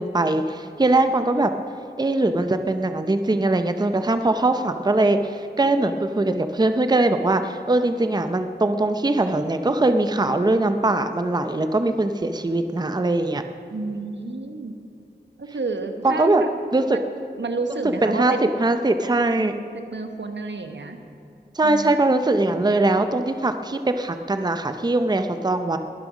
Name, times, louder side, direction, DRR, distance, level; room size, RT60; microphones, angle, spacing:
voice 1, 0.0-1.5 2.0-13.4 16.0-16.4 16.7-16.8 18.0-19.6 21.5-25.8, right 2 dB, 20° right, 8 dB, 0.6 m, -21 dB
voice 2, 13.7-14.8 15.4-16.5 16.9-17.0 17.4-18.5 19.4-21.0 21.6-21.9, right 3 dB, 80° right, 6 dB, 1.1 m, -30 dB
21.5 x 7.6 x 6.2 m, 2.6 s
wide cardioid pair, 70°, 18 cm